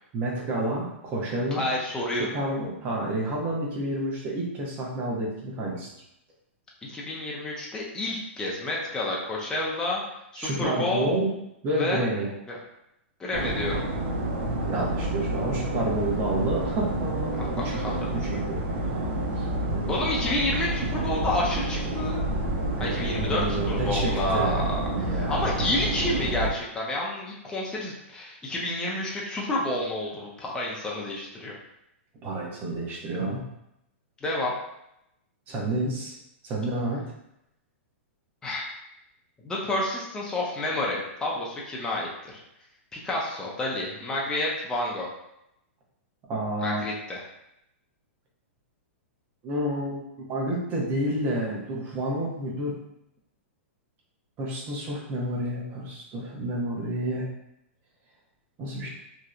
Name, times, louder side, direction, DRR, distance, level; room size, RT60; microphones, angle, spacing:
voice 1, 0.1-1.6 2.1-5.9 10.4-11.3 11.6-12.3 14.6-18.6 19.4-20.1 22.7-24.7 24.9-25.8 32.2-33.4 35.5-36.1 36.4-37.0 46.3-46.8 49.4-52.7 54.4-57.3 58.6-58.9, right 1 dB, 25° right, -3 dB, 0.7 m, -30 dB
voice 2, 1.6-2.3 6.9-10.0 10.3-11.1 11.7-12.0 12.5-12.6 13.2-13.8 17.4-17.9 19.9-22.2 22.8-24.8 25.1-31.5 34.2-34.5 38.4-38.6 39.4-42.4 42.9-45.1 46.6-47.2, left 1 dB, 10° left, -4 dB, 0.4 m, -29 dB
sound 1, 13.3-26.5, right 1 dB, 65° right, 0.5 m, -29 dB
2.7 x 2.1 x 2.4 m, 0.82 s
hypercardioid pair, 145°, 7 cm